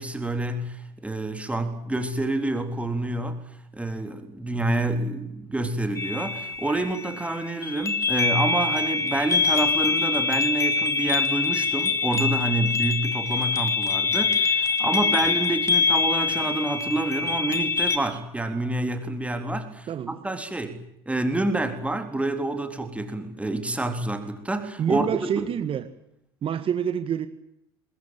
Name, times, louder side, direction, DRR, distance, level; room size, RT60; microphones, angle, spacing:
voice 1, 0.0-3.5 3.7-25.5, right 2 dB, 10° right, 6 dB, 3.9 m, -28 dB
sound 1, 5.9-18.0, left 4 dB, 20° left, 3.6 m, -24 dB
voice 2, 24.8-25.9 26.4-27.3, right 8 dB, 40° right, 10 dB, 1.9 m, -27 dB
24.5 x 21.0 x 9.2 m, 0.79 s
hypercardioid pair, 80°, 13 cm